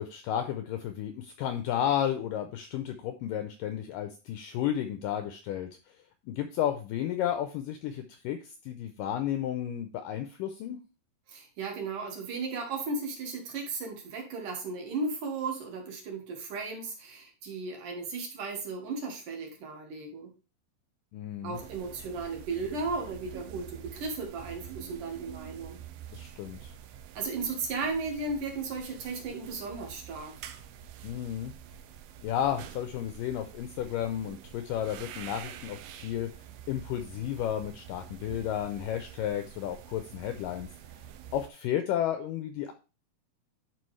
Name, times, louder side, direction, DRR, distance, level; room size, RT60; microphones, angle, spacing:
voice 1, 0.0-5.7 6.3-10.8 21.1-21.6 26.1-26.7 31.0-31.5 32.2-36.3 36.7-40.7 41.3-42.7, left 10 dB, 85° left, 8 dB, 1.9 m, -32 dB
voice 2, 11.3-20.3 21.4-25.8 27.1-30.3, right 3 dB, 60° right, 1 dB, 2.7 m, -35 dB
sound 1, 21.5-41.5, right 10 dB, 85° right, 2.5 m, -47 dB
11.5 x 4.7 x 3.2 m, 0.32 s
omnidirectional pair, 4.5 m